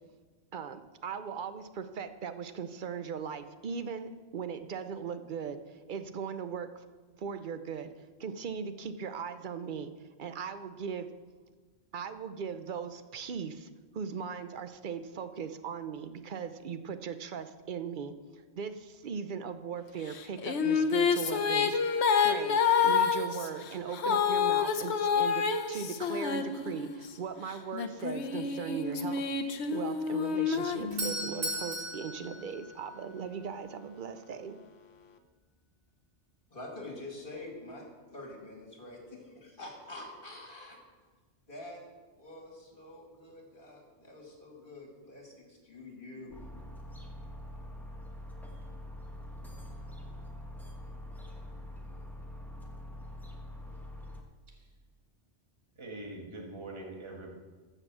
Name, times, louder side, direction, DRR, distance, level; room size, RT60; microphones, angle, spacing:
voice 1, 0.5-6.9 7.2-7.9 8.2-9.9 10.2-11.1 11.9-29.2 29.7-34.6, right 6 dB, 50° right, 10 dB, 0.7 m, -39 dB
Female singing, 20.1-27.1 27.7-31.5, left 6 dB, 70° left, 1.0 m, -28 dB
Doorbell, 30.5-33.4, right 1 dB, 80° right, 2.0 m, -37 dB
voice 2, 36.5-37.8 38.1-40.8 41.5-41.8 42.2-46.3, left 2 dB, 45° left, -1 dB, 2.7 m, -46 dB
sound 1, 46.3-54.2, left 1 dB, ahead, 1.3 m, -44 dB
voice 3, 55.8-57.3, right 2 dB, 25° right, -1 dB, 1.6 m, -43 dB
13.0 x 5.4 x 7.4 m, 1.4 s
omnidirectional pair, 1.2 m